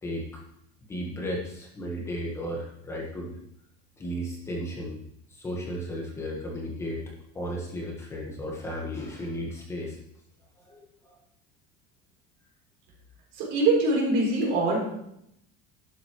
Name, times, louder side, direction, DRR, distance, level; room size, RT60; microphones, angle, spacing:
voice 1, 0.0-0.4 0.9-3.4 4.0-5.0 5.3-7.0 7.3-10.0 10.6-11.2, equal, 15° left, -2 dB, 1.3 m, -34 dB
voice 2, 13.4-14.9, right 2 dB, 55° right, -1 dB, 3.6 m, -23 dB
11.5 x 7.7 x 3.1 m, 0.76 s
cardioid pair, 175°, 20 cm